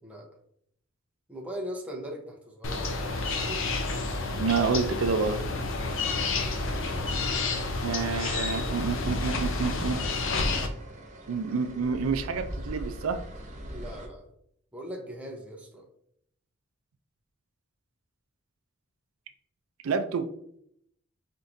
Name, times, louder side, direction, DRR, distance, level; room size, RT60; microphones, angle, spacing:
voice 1, 1.3-3.7 13.7-14.3 14.7-15.9, equal, 5° right, -1 dB, 0.8 m, -40 dB
sound 1, 2.6-10.7, left 3 dB, 60° left, 0.6 m, -30 dB
voice 2, 4.3-5.4 7.8-10.0 11.3-13.2 19.8-20.3, right 5 dB, 80° right, 9 dB, 0.4 m, -28 dB
sound 2, 6.6-14.1, right 1 dB, 35° right, 0.7 m, -43 dB
4.5 x 3.6 x 2.6 m, 0.70 s
head